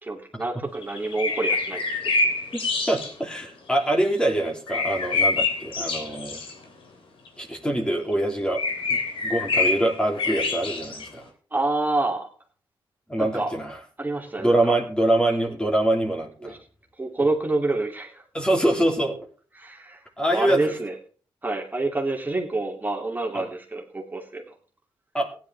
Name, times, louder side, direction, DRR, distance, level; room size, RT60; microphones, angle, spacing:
voice 1, 0.0-2.3 11.5-12.3 13.2-13.5 14.0-14.8 16.4-16.6 17.0-18.2 19.5-20.9 21.4-24.6, right 2 dB, 20° right, 0 dB, 2.8 m, -28 dB
sound 1, 0.7-3.1 4.7-6.5 7.3-7.4 8.1-8.2 8.6-11.1, left 3 dB, 70° left, 3.0 m, -26 dB
voice 2, 2.5-6.4 7.4-8.6 8.9-11.3 13.1-13.7 14.4-16.6 18.3-19.2 20.2-20.6 23.3-23.5 25.1-25.3, right 1 dB, 10° left, 0 dB, 3.1 m, -24 dB
16.0 x 10.5 x 3.5 m, 0.39 s
cardioid pair, 80°, 9 cm